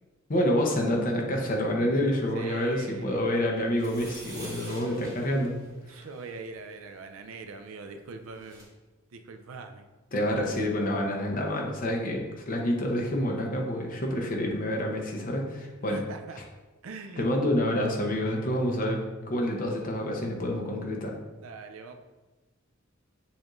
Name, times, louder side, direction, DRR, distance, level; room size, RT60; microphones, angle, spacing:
voice 1, 0.3-5.5 5.9-6.0 10.1-16.0 17.2-21.2, equal, 45° left, 0 dB, 0.8 m, -28 dB
voice 2, 2.3-3.4 5.9-8.7 9.1-9.9 15.8-16.4 16.8-17.3 21.4-21.9, right 4 dB, 80° right, 6 dB, 0.4 m, -42 dB
sound 1, 3.7-6.3 8.0-8.1 8.3-8.6, right 1 dB, 15° right, 1.1 m, -46 dB
7.0 x 2.5 x 3.0 m, 1.2 s
head